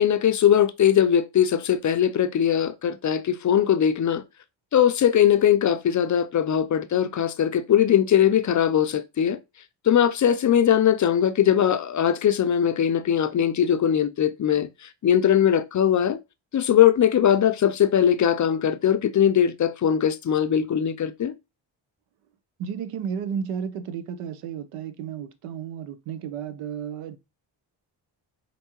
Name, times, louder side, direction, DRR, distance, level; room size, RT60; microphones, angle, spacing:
voice 1, 0.0-4.2 4.7-9.4 9.9-16.2 16.5-21.3, left 9 dB, 40° left, 0.4 m, -20 dB
voice 2, 22.6-27.2, right 7 dB, 90° right, 0.6 m, -33 dB
4.4 x 2.7 x 2.9 m
supercardioid pair, 55°, 50 cm